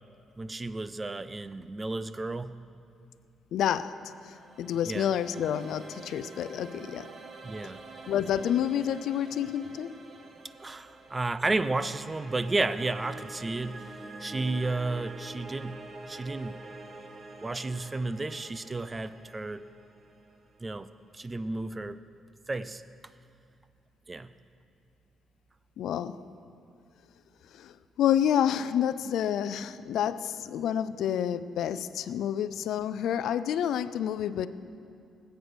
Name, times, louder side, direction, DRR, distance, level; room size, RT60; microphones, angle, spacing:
voice 1, 0.4-2.6 4.9-5.1 7.4-7.8 10.6-13.8 14.2-15.8 16.1-16.6 17.4-19.6 20.6-20.9 21.1-22.0 22.5-22.8 24.1-24.3, right 2 dB, 25° right, 14 dB, 0.6 m, -32 dB
voice 2, 3.5-7.1 8.1-9.9 25.8-26.2 27.5-34.5, left 9 dB, 75° left, 14 dB, 0.5 m, -29 dB
sound 1, 4.0-21.1, right 2 dB, 50° right, 1.4 m, -47 dB
19.5 x 8.2 x 6.3 m, 2.5 s
cardioid pair, 90°, 0 cm